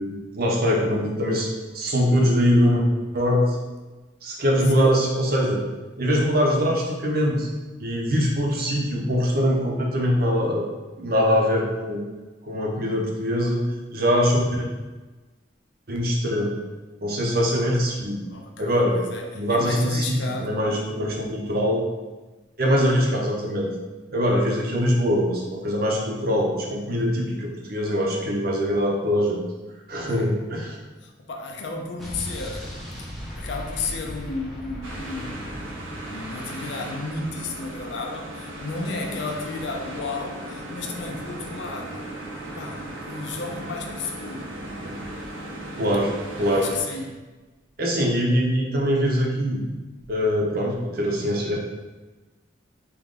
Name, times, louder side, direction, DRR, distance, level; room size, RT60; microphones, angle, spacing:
voice 1, 0.0-1.5 1.7-2.8 3.1-3.6 4.2-5.6 6.0-7.5 7.8-10.7 11.0-12.0 12.5-13.6 13.9-14.7 15.9-16.5 17.0-18.2 18.6-19.0 19.3-21.9 22.6-23.7 24.1-29.4 29.9-30.8 44.8-44.9 45.8-46.7 47.8-49.6 50.1-51.6, equal, 50° right, -1 dB, 0.7 m, -22 dB
voice 2, 18.3-20.8 30.0-30.4 31.0-32.7 33.0-35.7 36.1-42.1 42.5-44.5 46.4-47.2, left 3 dB, 65° left, 2 dB, 0.5 m, -33 dB
Explosion, 32.0-36.8, equal, ahead, 0.6 m, -37 dB
sound 1, 34.8-46.8, right 1 dB, 85° right, 0.7 m, -37 dB
3.7 x 2.9 x 3.7 m, 1.2 s
head